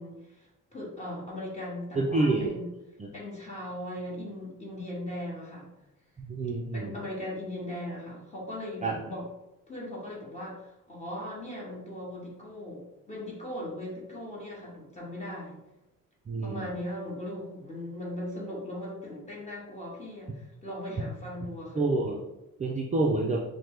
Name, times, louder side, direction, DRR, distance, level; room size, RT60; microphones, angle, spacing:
voice 1, 0.0-2.7 3.1-5.7 6.7-9.3 9.7-15.6 16.4-21.8, left 1 dB, 20° left, -5 dB, 1.4 m, -39 dB
voice 2, 2.0-2.5 3.0-3.1 6.2-7.0 8.8-8.9 16.3-16.8 21.0-21.1 21.8-22.2 22.6-23.4, right 2 dB, 25° right, -1 dB, 0.4 m, -28 dB
5.6 x 2.1 x 3.2 m, 0.95 s
cardioid pair, 135°, 33 cm